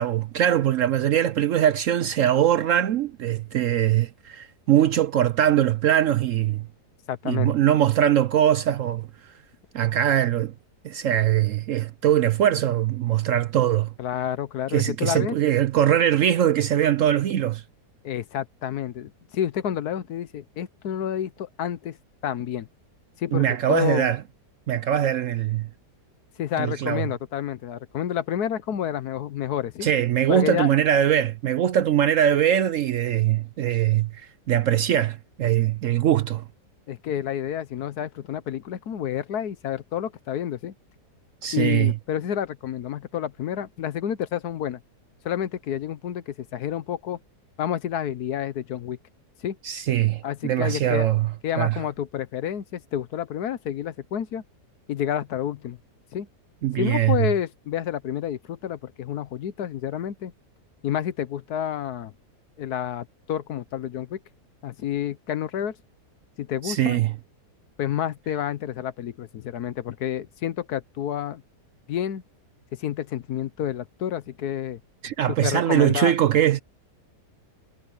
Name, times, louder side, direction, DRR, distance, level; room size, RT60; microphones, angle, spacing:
voice 1, 0.0-6.7 7.2-9.1 9.7-10.5 10.8-13.9 14.7-17.6 23.3-24.2 24.7-25.7 26.6-27.1 29.8-36.4 41.4-41.9 49.6-51.3 51.6-51.8 56.6-57.3 66.6-67.1 75.0-76.6, right 11 dB, 65° right, 0.8 m, -22 dB
voice 2, 7.1-7.5 14.0-15.4 18.0-22.0 22.2-22.7 23.2-24.1 26.4-29.9 30.3-30.7 36.9-40.7 41.5-44.8 45.2-47.2 47.6-49.0 49.4-49.6 50.2-51.1 51.4-54.4 54.9-55.8 56.1-56.3 56.8-60.3 60.8-62.1 62.6-64.2 64.6-65.8 66.4-67.0 67.8-71.4 71.9-72.2 72.7-74.8 75.3-76.1, left 10 dB, 70° left, 1.4 m, -29 dB
omnidirectional pair, 1.8 m